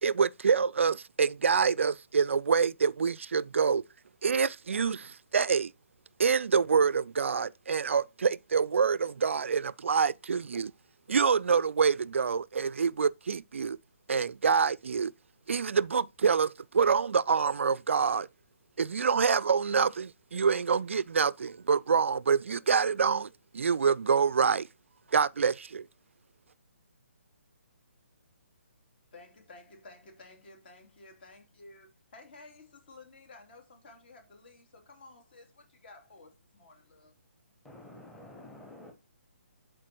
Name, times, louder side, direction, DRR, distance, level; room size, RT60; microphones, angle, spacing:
voice 1, 0.0-3.8 4.2-5.7 6.2-10.7 11.1-13.8 14.1-15.1 15.5-18.3 18.8-24.7 25.1-25.9, right 6 dB, 65° right, 0.4 m, -26 dB
voice 2, 29.1-37.1, left 2 dB, 50° left, 3.0 m, -53 dB
voice 3, 37.6-38.9, left 1 dB, 5° left, 1.3 m, -49 dB
11.5 x 4.5 x 2.9 m
figure-of-eight pair, 140°, 7 cm